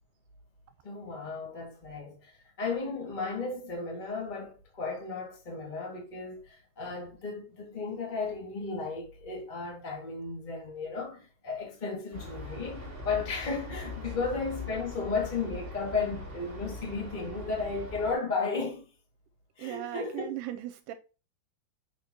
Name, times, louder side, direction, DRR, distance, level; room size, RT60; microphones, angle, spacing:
voice 1, 0.8-18.9 19.6-20.3, left 4 dB, 50° left, 0.5 m, -34 dB
sound 1, 12.1-18.1, left 2 dB, 25° right, 1.3 m, -41 dB
voice 2, 19.6-20.9, right 14 dB, 80° right, 2.5 m, -38 dB
6.4 x 6.4 x 2.9 m
omnidirectional pair, 4.8 m